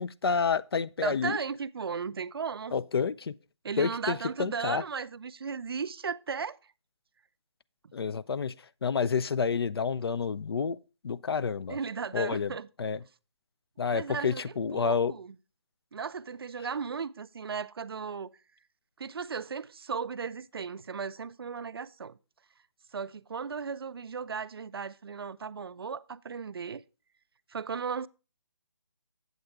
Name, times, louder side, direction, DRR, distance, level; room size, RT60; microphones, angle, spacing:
voice 1, 0.0-1.4 2.7-3.3 3.8-4.8 7.9-8.5 8.8-10.8 11.0-11.8 12.1-12.5 12.8-13.0 13.8-15.1, left 5 dB, 55° left, 0.4 m, -29 dB
voice 2, 1.0-2.8 3.6-6.6 11.7-12.7 13.9-15.4 15.9-18.3 19.0-22.2 22.9-26.8 27.5-28.1, right 6 dB, 55° right, 0.4 m, -36 dB
7.9 x 7.8 x 3.5 m
hypercardioid pair, 165°, 15 cm